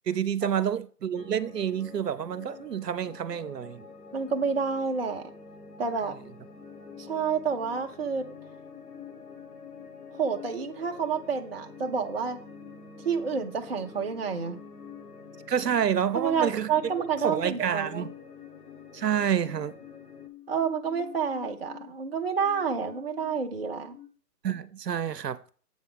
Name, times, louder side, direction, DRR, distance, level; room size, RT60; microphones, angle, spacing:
voice 1, 0.1-3.8 15.5-16.7 17.2-18.1 18.9-19.8 24.4-25.4, right 8 dB, 75° right, 0.8 m, -28 dB
sound 1, 1.1-20.3, left 3 dB, 70° left, 1.4 m, -48 dB
voice 2, 4.1-5.3 5.8-6.1 7.0-8.2 10.2-12.4 13.0-14.6 16.1-18.1 20.5-24.0, right 6 dB, 40° right, 0.6 m, -29 dB
sound 2, 6.5-24.1, left 12 dB, 20° left, 1.3 m, -50 dB
7.8 x 7.1 x 3.5 m
hypercardioid pair, 155°, 48 cm